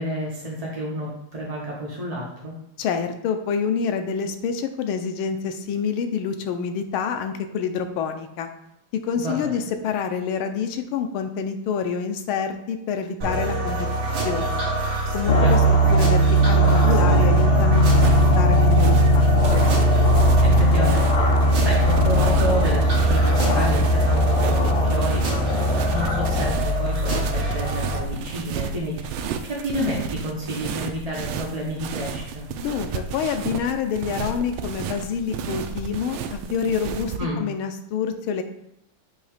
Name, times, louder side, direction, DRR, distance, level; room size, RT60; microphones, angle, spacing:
voice 1, 0.0-2.5 9.2-9.5 15.4-15.6 20.4-32.5 37.2-37.4, equal, 35° right, -4 dB, 0.6 m, -30 dB
voice 2, 2.8-8.5 8.9-13.8 14.2-14.6 15.1-19.7 32.6-38.4, left 6 dB, 90° left, 7 dB, 1.5 m, -27 dB
sound 1, 13.2-28.0, equal, 65° right, 2.2 m, -25 dB
sound 2, 15.3-26.5, right 1 dB, 65° left, 0.7 m, -19 dB
sound 3, 17.9-37.2, right 6 dB, 90° right, 1.4 m, -32 dB
6.7 x 2.9 x 4.9 m, 0.81 s
omnidirectional pair, 2.2 m